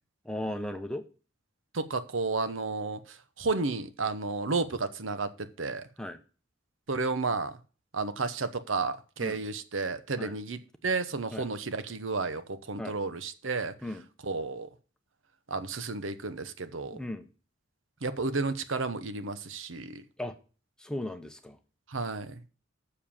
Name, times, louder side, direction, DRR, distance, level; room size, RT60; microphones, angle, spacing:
voice 1, 0.2-1.0 6.0-6.2 9.2-9.4 10.2-10.3 11.3-11.5 12.8-13.0 13.8-14.0 16.9-17.3 20.2-20.4 20.8-21.6, left 1 dB, 5° left, 7 dB, 0.8 m, -36 dB
voice 2, 1.7-5.9 6.9-7.6 7.9-13.7 14.2-14.7 15.5-17.0 18.0-20.0 21.9-22.4, right 3 dB, 80° right, 12 dB, 0.9 m, -32 dB
7.3 x 6.7 x 7.3 m, 0.36 s
head